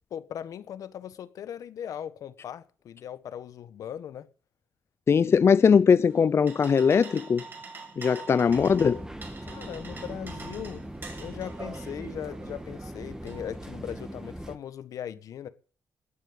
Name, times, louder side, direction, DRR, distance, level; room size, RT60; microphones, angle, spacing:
voice 1, 0.1-4.3 9.4-10.8 11.2-15.5, left 9 dB, 75° left, 1.3 m, -39 dB
voice 2, 5.1-7.4 8.0-9.0, left 6 dB, 50° left, 0.6 m, -20 dB
sound 1, 6.0-14.0, right 3 dB, 40° right, 6.7 m, -45 dB
sound 2, 8.5-14.6, right 1 dB, 10° right, 2.4 m, -40 dB
19.5 x 7.4 x 7.3 m
cardioid pair, 65°, 6 cm